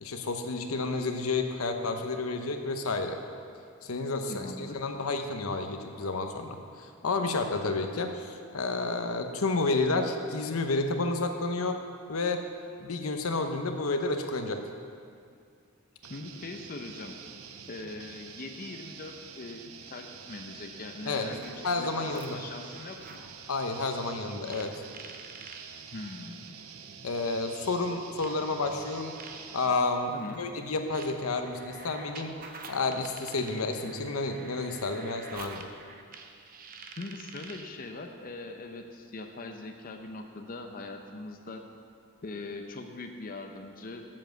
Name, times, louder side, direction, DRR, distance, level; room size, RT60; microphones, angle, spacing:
voice 1, 0.0-3.2 3.8-11.8 12.1-12.4 12.8-14.6 21.1-21.3 21.6-22.4 23.5-24.7 27.0-29.2 29.5-32.3 32.7-35.6, left 3 dB, 85° left, 5 dB, 0.8 m, -30 dB
voice 2, 4.3-4.8 16.1-17.1 17.7-23.2 25.1-25.2 25.8-26.5 30.1-30.4 37.0-41.6 42.2-44.1, left 2 dB, 40° left, 4 dB, 0.6 m, -41 dB
sound 1, 16.0-29.7, right 7 dB, 90° right, 0.7 m, -47 dB
sound 2, 21.3-23.3 24.4-25.7 26.8-26.9 28.2-37.8, right 4 dB, 40° right, 0.7 m, -48 dB
7.5 x 7.2 x 7.7 m, 2.3 s
head